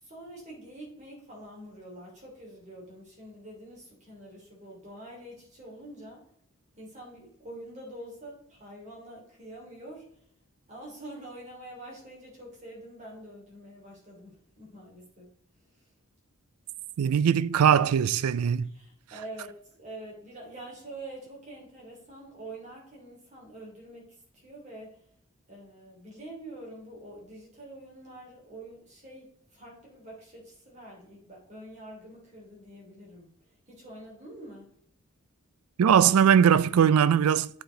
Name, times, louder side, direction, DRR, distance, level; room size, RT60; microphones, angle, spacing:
voice 1, 0.0-6.2 6.7-10.2 10.7-15.3 15.8-15.9 18.7-25.0 25.5-33.3 33.7-34.7, right 1 dB, 35° right, 2.9 m, -46 dB
voice 2, 17.0-18.7 35.8-37.5, right 8 dB, 85° right, 0.3 m, -20 dB
8.4 x 4.8 x 3.8 m
head